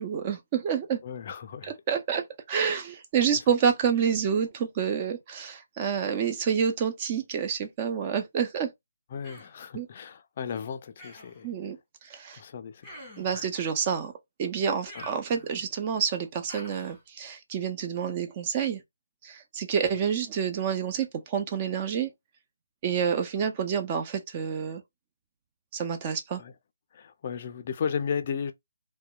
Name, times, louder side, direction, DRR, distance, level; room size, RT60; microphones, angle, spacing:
voice 1, 0.0-1.0 1.9-8.7 9.7-9.9 11.4-11.8 12.0-12.4 13.2-14.1 14.4-18.8 19.2-22.1 22.8-24.8 25.7-26.4, right 7 dB, 25° right, 0.4 m, -28 dB
voice 2, 1.0-1.7 9.1-11.5 12.3-12.9 13.3-13.5 14.9-15.1 26.4-26.5 26.9-28.5, left 7 dB, 40° left, 0.3 m, -34 dB
Human voice, 9.2-9.6 11.0-11.4 12.8-13.4 14.8-15.7 16.5-17.0, equal, ahead, 1.3 m, -47 dB
2.7 x 2.1 x 2.2 m
hypercardioid pair, 160°, 0 cm